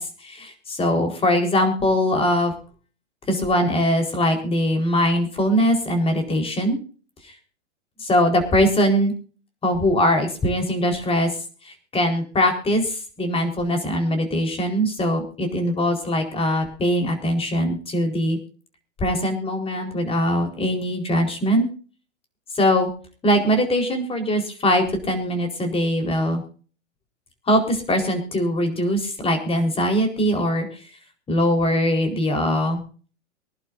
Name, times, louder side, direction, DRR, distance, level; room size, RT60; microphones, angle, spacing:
voice 1, 0.0-2.5 3.3-6.8 8.0-9.1 9.6-11.3 11.6-18.4 19.0-21.7 22.6-22.9 23.2-26.4 27.5-30.7 31.3-32.8, equal, 15° left, 5 dB, 4.4 m, -21 dB
24.5 x 11.5 x 2.7 m, 0.40 s
hypercardioid pair, 120°, 37 cm